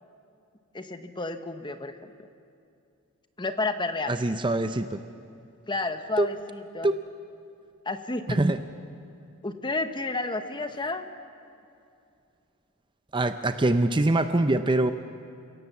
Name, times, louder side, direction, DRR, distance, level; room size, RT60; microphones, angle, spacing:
voice 1, 0.7-1.9 3.4-4.1 5.7-6.9 7.8-8.4 9.4-11.0, left 3 dB, 20° left, 8 dB, 1.1 m, -31 dB
voice 2, 4.1-5.0 6.2-6.3 6.8-7.0 8.4-8.6 13.1-14.9, right 2 dB, 20° right, 9 dB, 0.6 m, -23 dB
30.0 x 17.5 x 7.3 m, 2.5 s
head